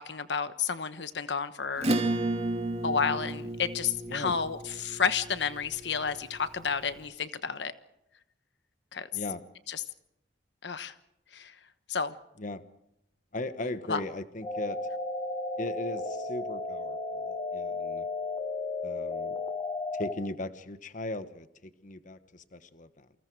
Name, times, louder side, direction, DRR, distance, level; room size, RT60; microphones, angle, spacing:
voice 1, 0.0-1.9 2.8-7.7 8.9-9.1 9.7-9.8 10.6-10.9 11.3-11.5 11.9-12.1 13.9-14.0, left 6 dB, 75° left, 12 dB, 1.2 m, -31 dB
Acoustic guitar / Strum, 1.8-6.7, right 2 dB, 35° right, 2.9 m, -33 dB
voice 2, 13.3-14.8 15.6-18.1 18.8-19.4 19.9-23.2, left 2 dB, 45° left, 11 dB, 1.1 m, -38 dB
sound 1, 14.4-20.1, left 3 dB, 25° left, 2.9 m, -34 dB
28.5 x 25.0 x 4.7 m, 0.84 s
head